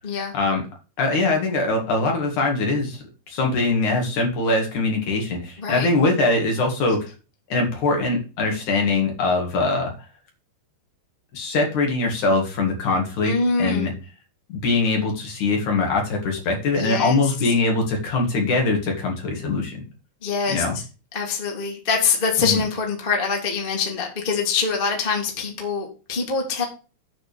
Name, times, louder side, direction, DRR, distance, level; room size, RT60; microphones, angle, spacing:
voice 1, 1.0-7.0 7.5-9.9 11.3-13.3 13.6-13.9 14.5-19.8 20.5-20.8 22.4-22.6, left 3 dB, 50° left, 2 dB, 3.0 m, -22 dB
voice 2, 13.2-13.9 16.7-17.1 20.2-20.6 21.1-26.6, left 5 dB, 35° left, 0 dB, 0.8 m, -24 dB
9.5 x 4.2 x 6.9 m, 0.34 s
omnidirectional pair, 5.1 m